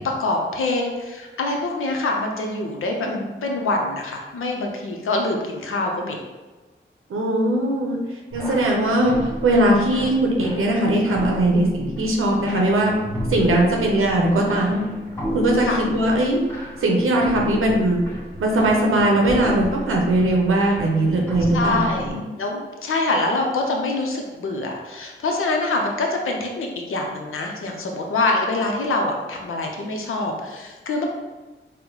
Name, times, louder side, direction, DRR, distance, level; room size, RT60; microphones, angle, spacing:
voice 1, 0.2-3.1 3.4-6.2 15.6-15.8 21.5-22.1 22.4-31.0, left 2 dB, 90° left, 1 dB, 0.6 m, -25 dB
voice 2, 7.1-8.0 8.3-12.9 13.3-14.9 15.3-16.4 16.8-18.0 18.4-22.2, right 1 dB, 85° right, -1 dB, 0.7 m, -20 dB
sound 1, 8.3-22.1, equal, 10° left, 1.4 m, -33 dB
4.3 x 2.1 x 3.8 m, 1.2 s
cardioid pair, 50°, 21 cm